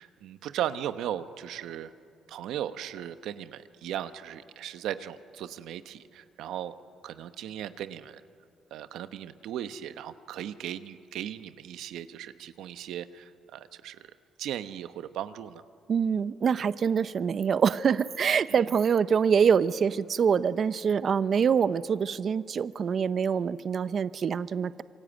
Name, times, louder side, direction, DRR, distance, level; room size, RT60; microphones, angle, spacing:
voice 1, 0.0-1.9 2.3-6.7 7.0-8.2 8.7-14.0 14.4-15.6 18.5-18.6, right 11 dB, 85° right, 11 dB, 1.0 m, -37 dB
voice 2, 15.9-24.8, right 7 dB, 50° right, 15 dB, 0.7 m, -25 dB
27.0 x 24.0 x 9.0 m, 2.4 s
cardioid pair, 90°, 0 cm